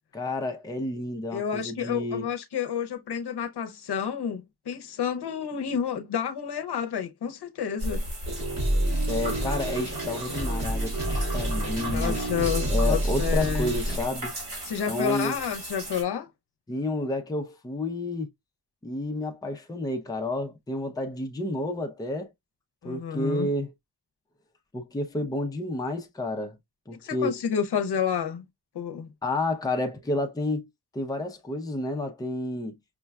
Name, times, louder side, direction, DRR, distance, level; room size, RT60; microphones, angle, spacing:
voice 1, 0.1-2.3 9.1-12.2 12.7-14.3 14.9-15.4 16.7-18.3 18.8-22.3 22.8-23.7 24.7-26.6 26.9-27.4 29.2-30.7 30.9-32.8, left 2 dB, 10° left, 0.5 m, -30 dB
voice 2, 1.3-8.0 11.9-13.7 14.6-16.3 22.8-23.5 27.0-28.5 28.7-29.1, left 7 dB, 75° left, 0.7 m, -30 dB
sound 1, 7.8-16.0, right 1 dB, 70° right, 2.2 m, -35 dB
sound 2, 8.3-14.0, right 1 dB, 40° right, 2.0 m, -28 dB
5.3 x 2.2 x 2.2 m
wide cardioid pair, 100°, 40 cm